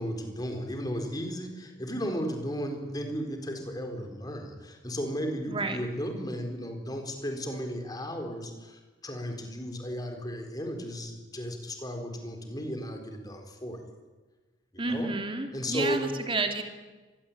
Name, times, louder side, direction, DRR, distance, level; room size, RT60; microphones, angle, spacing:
voice 1, 0.0-13.8 14.7-15.1 15.5-16.1, equal, 20° left, 4 dB, 4.3 m, -35 dB
voice 2, 5.5-5.8 14.8-16.6, right 3 dB, 25° right, 5 dB, 2.9 m, -30 dB
25.0 x 20.5 x 8.8 m, 1.3 s
head